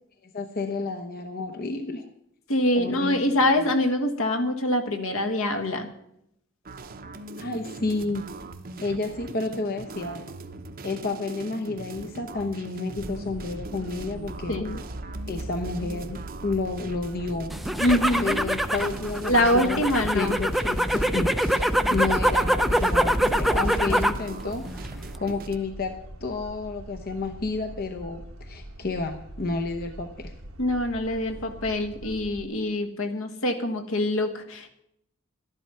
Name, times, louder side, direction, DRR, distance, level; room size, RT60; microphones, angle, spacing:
voice 1, 0.2-2.1 2.7-3.3 3.6-3.7 7.4-8.3 8.8-10.4 10.8-14.6 15.3-17.5 18.2-19.8 20.1-26.0 26.2-30.3, left 3 dB, 45° left, 5 dB, 0.8 m, -31 dB
voice 2, 2.5-5.9 14.5-14.8 17.8-18.4 19.2-20.3 23.9-24.0 30.6-34.7, left 1 dB, 70° left, 7 dB, 1.5 m, -24 dB
sound 1, 6.6-25.6, right 2 dB, 45° right, 0.8 m, -41 dB
sound 2, 13.0-32.5, right 1 dB, 80° right, 1.1 m, -41 dB
sound 3, 17.5-24.3 24.6-25.2, equal, ahead, 0.5 m, -24 dB
12.5 x 10.5 x 5.5 m, 0.78 s
head